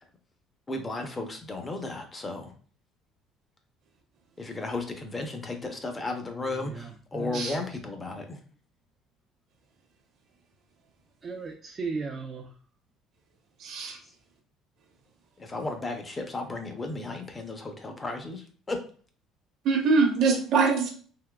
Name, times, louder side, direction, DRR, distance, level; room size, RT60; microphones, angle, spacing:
voice 1, 0.7-2.5 4.4-8.4 15.4-18.9, left 2 dB, 20° left, 5 dB, 0.6 m, -34 dB
voice 2, 6.4-7.6 11.2-12.5, right 4 dB, 30° right, 3 dB, 0.5 m, -37 dB
voice 3, 13.6-14.0 19.6-20.9, right 4 dB, 60° right, 2 dB, 0.9 m, -23 dB
3.6 x 2.7 x 2.3 m, 0.43 s
cardioid pair, 110°, 0 cm